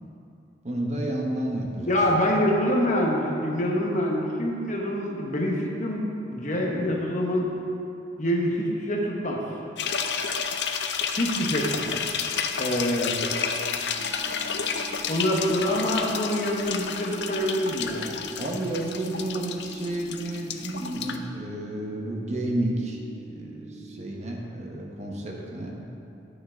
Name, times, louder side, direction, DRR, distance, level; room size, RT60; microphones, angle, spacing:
voice 1, 0.6-2.0 18.4-25.7, right 1 dB, 40° right, -1 dB, 1.1 m, -31 dB
voice 2, 1.9-7.5 8.2-9.4 11.2-12.0 12.6-13.2 15.1-18.2, equal, 40° left, -1 dB, 1.1 m, -25 dB
sound 1, 9.8-21.2, left 6 dB, 65° left, 0.6 m, -31 dB
sound 2, 14.0-24.0, right 3 dB, 65° right, 2.5 m, -45 dB
10.5 x 6.6 x 5.0 m, 2.7 s
head